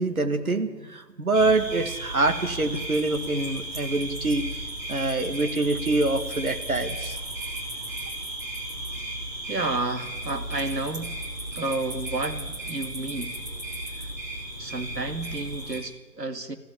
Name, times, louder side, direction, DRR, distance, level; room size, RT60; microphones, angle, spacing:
voice 1, 0.0-7.2, right 2 dB, 60° right, 8 dB, 2.2 m, -25 dB
sound 1, 1.3-15.8, right 1 dB, 10° right, 1.7 m, -34 dB
voice 2, 9.5-11.2 11.5-13.4 13.9-14.1 14.6-16.5, right 2 dB, 75° right, 8 dB, 2.2 m, -31 dB
21.0 x 15.5 x 8.9 m, 1.3 s
figure-of-eight pair, 155°, 49 cm